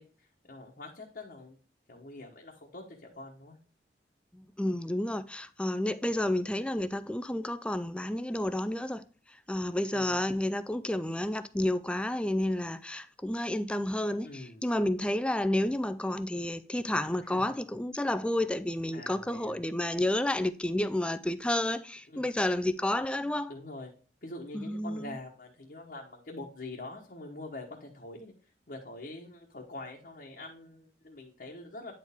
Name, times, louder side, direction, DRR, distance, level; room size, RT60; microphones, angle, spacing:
voice 1, 0.0-1.6 1.9-3.6 9.9-10.2 14.2-14.6 17.3-17.5 18.9-19.6 22.1-22.3 23.5-23.9 24.2-28.3 28.7-31.9, left 2 dB, 55° left, 1.2 m, -45 dB
voice 2, 4.3-9.0 9.5-23.5 24.5-25.2, left 1 dB, 5° left, 0.3 m, -30 dB
9.4 x 4.5 x 3.5 m
head